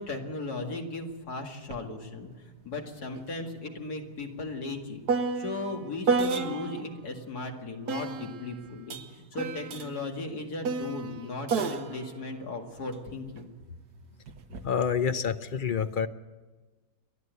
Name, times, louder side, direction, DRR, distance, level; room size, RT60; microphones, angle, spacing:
voice 1, 0.0-5.0 5.4-13.5, left 2 dB, 70° left, 2 dB, 2.7 m, -37 dB
sound 1, 1.7-1.9 2.2-6.9 7.9-13.4 14.3-14.7, right 4 dB, 70° right, 1.6 m, -33 dB
voice 2, 14.6-16.1, left 7 dB, 50° left, 10 dB, 0.6 m, -27 dB
29.0 x 11.5 x 8.1 m, 1.3 s
omnidirectional pair, 1.7 m